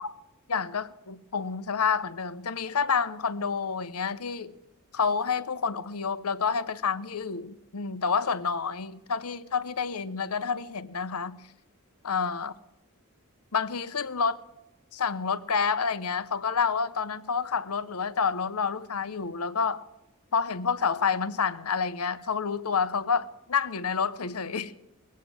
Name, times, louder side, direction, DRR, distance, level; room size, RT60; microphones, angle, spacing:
voice 1, 0.5-4.5 4.9-11.4 12.0-12.5 13.5-14.4 14.9-19.8 20.3-24.7, left 6 dB, 75° left, 0.8 m, -29 dB
20.5 x 8.5 x 7.7 m
head